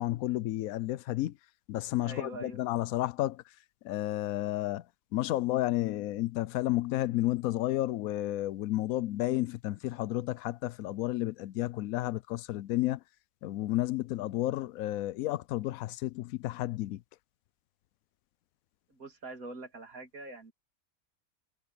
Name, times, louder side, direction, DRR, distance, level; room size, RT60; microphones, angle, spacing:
voice 1, 0.0-1.4 1.7-3.4 3.8-4.8 5.1-13.0 13.4-17.0, left 15 dB, 85° left, 1.0 m, -31 dB
voice 2, 2.0-2.6 18.9-20.5, right 2 dB, 90° right, 3.2 m, -44 dB
omnidirectional pair, 1.4 m